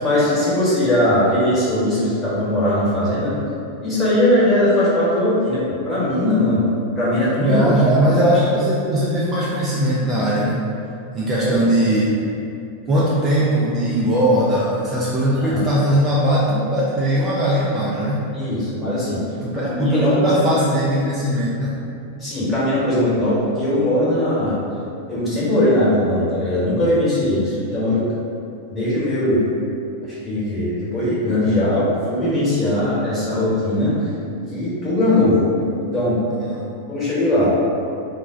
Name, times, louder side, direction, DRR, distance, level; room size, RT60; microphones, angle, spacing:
voice 1, 0.0-3.4 3.8-6.6 7.0-7.6 11.4-11.7 15.3-15.6 18.3-19.2 19.5-20.4 22.2-24.6 25.1-28.1 28.7-29.4 30.0-34.1 34.5-35.4 35.9-36.1 36.9-37.5, left 1 dB, 15° left, -10 dB, 1.1 m, -20 dB
voice 2, 7.4-10.6 11.1-12.1 12.9-18.3 19.4-21.7 36.4-36.6, right 1 dB, 20° right, -7 dB, 0.4 m, -19 dB
2.2 x 2.1 x 3.6 m, 2.6 s
figure-of-eight pair, 90°, 0 cm